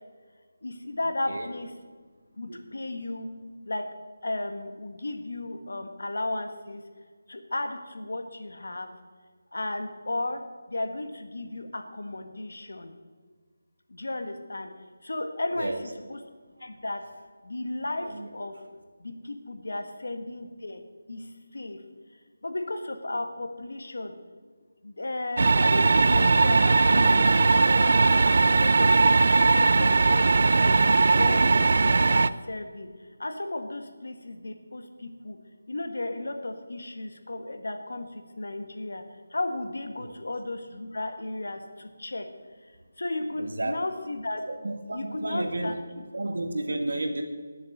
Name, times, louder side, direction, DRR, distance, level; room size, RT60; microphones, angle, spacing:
voice 1, 0.6-1.7 2.4-3.3 3.7-3.8 4.2-6.8 7.3-8.9 9.5-10.4 10.7-12.9 13.9-14.7 15.0-15.7 16.1-16.2 16.6-17.0 17.4-18.1 18.3-18.5 19.0-20.8 21.1-21.2 21.5-21.8 22.4-24.1 24.8-28.2 28.5-30.8 31.1-32.9 33.2-35.4 35.7-38.1 38.4-39.0 39.3-42.2 43.0-44.4 44.9-45.7, left 2 dB, 80° left, 7 dB, 1.5 m, -34 dB
voice 2, 15.5-16.1 18.0-18.3 40.0-40.1 43.4-43.7 44.5-45.8 46.1-47.2, right 2 dB, 75° right, 4 dB, 1.9 m, -32 dB
sound 1, 25.4-32.3, right 3 dB, 55° right, 0.3 m, -19 dB
10.0 x 7.3 x 8.5 m, 1.5 s
figure-of-eight pair, 170°, 0 cm